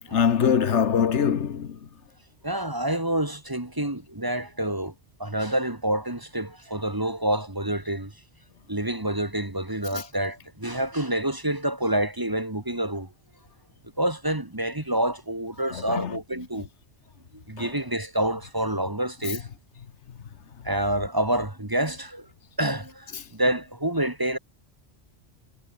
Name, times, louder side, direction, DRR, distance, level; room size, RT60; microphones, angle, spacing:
voice 1, 0.1-1.7 15.7-16.2 17.6-17.7, left 7 dB, 85° left, 1.4 m, -23 dB
voice 2, 2.4-4.9 5.2-8.1 8.7-13.1 14.0-16.7 17.5-19.5 20.6-22.2 22.6-24.4, right 1 dB, 20° right, 1.7 m, -27 dB
omnidirectional pair, 1.1 m